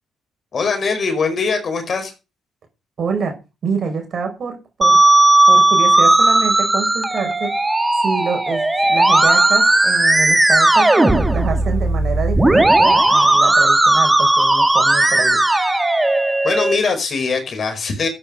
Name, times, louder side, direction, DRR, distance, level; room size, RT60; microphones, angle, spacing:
voice 1, 0.5-2.1 16.4-18.1, left 4 dB, 45° left, 5.0 m, -21 dB
voice 2, 3.0-3.4 3.6-5.0 5.5-7.5 8.0-15.4, right 5 dB, 55° right, 5.7 m, -26 dB
Musical instrument, 4.8-16.8, right 2 dB, 15° right, 1.8 m, -15 dB
13.0 x 8.8 x 5.2 m
cardioid pair, 90°, 0 cm